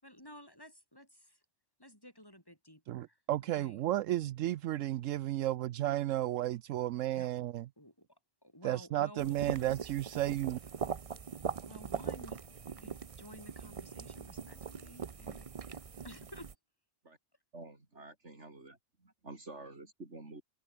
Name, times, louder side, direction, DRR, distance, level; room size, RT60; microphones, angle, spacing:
voice 1, 0.0-1.4 1.8-3.2 3.5-3.8 7.1-7.3 7.8-9.7 11.6-16.5, equal, 15° left, 5.4 m, -54 dB
voice 2, 2.9-7.6 8.6-10.6, right 14 dB, 80° right, 0.9 m, -33 dB
sound 1, 9.2-16.5, right 6 dB, 40° right, 0.6 m, -41 dB
voice 3, 17.5-20.4, right 2 dB, 60° right, 4.2 m, -49 dB
omnidirectional pair, 1.3 m